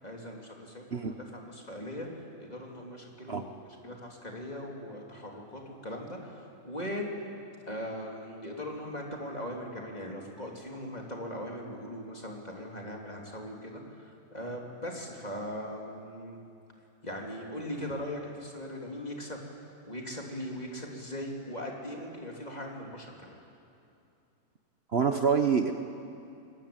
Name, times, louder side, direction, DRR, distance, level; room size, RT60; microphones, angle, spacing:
voice 1, 0.0-3.5 3.8-7.1 7.7-13.8 14.3-16.4 17.0-19.4 19.9-23.4, equal, 30° left, -1 dB, 3.4 m, -39 dB
voice 2, 24.9-25.7, right 6 dB, 50° right, 6 dB, 1.1 m, -26 dB
29.5 x 20.5 x 8.9 m, 2.6 s
omnidirectional pair, 1.5 m